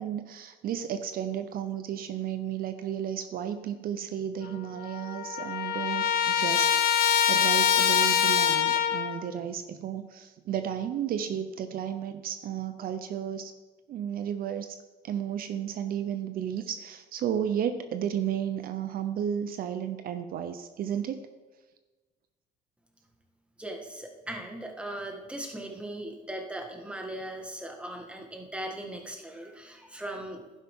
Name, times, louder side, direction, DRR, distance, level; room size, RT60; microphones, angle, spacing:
voice 1, 0.0-13.5 13.9-14.8 15.0-21.3, right 9 dB, 60° right, 10 dB, 0.7 m, -33 dB
Trumpet, 4.4-4.5 4.8-9.2, left 9 dB, 65° left, 0.9 m, -24 dB
voice 2, 23.6-30.4, right 1 dB, 5° right, 2 dB, 1.7 m, -39 dB
11.5 x 10.0 x 3.7 m, 1.2 s
cardioid pair, 110°, 17 cm